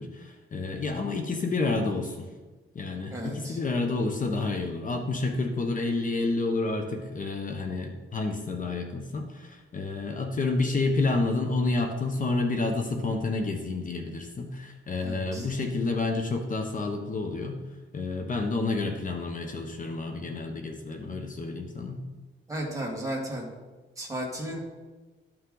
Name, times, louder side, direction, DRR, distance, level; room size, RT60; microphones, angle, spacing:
voice 1, 0.0-2.3 2.7-17.6 17.9-22.0, left 3 dB, 40° left, 4 dB, 0.9 m, -29 dB
voice 2, 3.1-3.6 15.0-15.5 22.5-23.5 24.0-24.6, right 1 dB, 15° right, -2 dB, 2.2 m, -34 dB
12.5 x 5.8 x 3.9 m, 1.2 s
cardioid pair, 125°, 21 cm